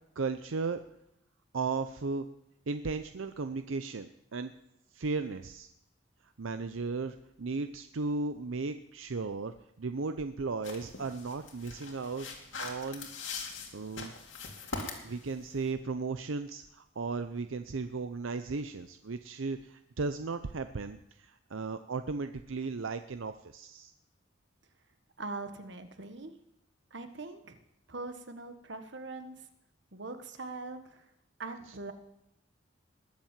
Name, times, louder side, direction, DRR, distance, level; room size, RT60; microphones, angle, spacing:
voice 1, 0.2-0.8 1.5-2.3 2.7-4.5 4.9-5.7 6.4-12.3 12.6-13.1 13.7-14.1 15.0-23.9, right 4 dB, 85° right, 9 dB, 0.6 m, -35 dB
sound 1, 10.6-15.7, left 4 dB, 80° left, 2.7 m, -42 dB
voice 2, 25.2-26.3 26.9-27.6 27.9-29.5 29.9-31.0 31.4-31.9, right 3 dB, 65° right, 8 dB, 1.3 m, -42 dB
20.5 x 7.3 x 7.4 m, 0.81 s
head